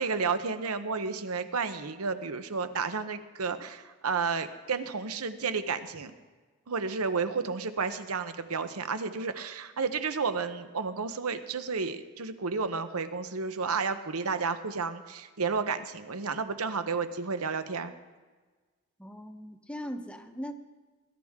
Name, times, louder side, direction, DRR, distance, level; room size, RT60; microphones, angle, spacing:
voice 1, 0.0-6.1 6.7-17.9, right 5 dB, 85° right, 10 dB, 0.9 m, -32 dB
voice 2, 19.0-20.5, equal, 5° left, 6 dB, 0.8 m, -39 dB
20.5 x 12.0 x 3.7 m, 1.4 s
head